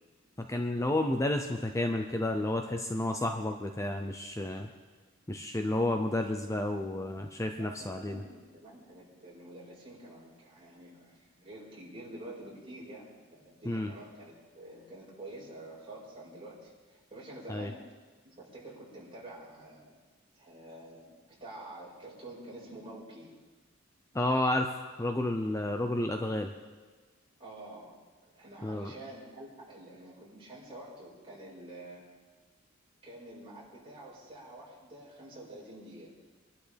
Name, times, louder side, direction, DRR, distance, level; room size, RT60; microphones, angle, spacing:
voice 1, 0.4-4.7 5.3-8.2 13.7-13.9 17.5-17.7 24.1-24.7 25.0-26.5 28.6-28.9, left 1 dB, 15° left, 4 dB, 0.6 m, -31 dB
voice 2, 7.6-17.9 18.2-20.0 20.3-23.3 27.4-27.9 28.2-32.1 33.0-36.1, right 1 dB, 30° right, -6 dB, 5.1 m, -48 dB
24.0 x 11.5 x 3.5 m, 1.3 s
head